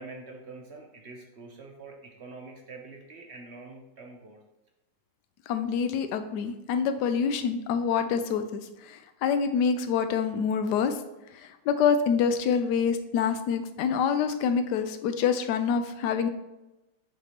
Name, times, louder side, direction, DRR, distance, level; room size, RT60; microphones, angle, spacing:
voice 1, 0.0-4.4, right 3 dB, 65° right, 1 dB, 0.6 m, -45 dB
voice 2, 5.5-10.9 11.3-16.3, left 6 dB, 70° left, 9 dB, 1.1 m, -26 dB
7.1 x 2.8 x 5.0 m, 0.97 s
omnidirectional pair, 2.1 m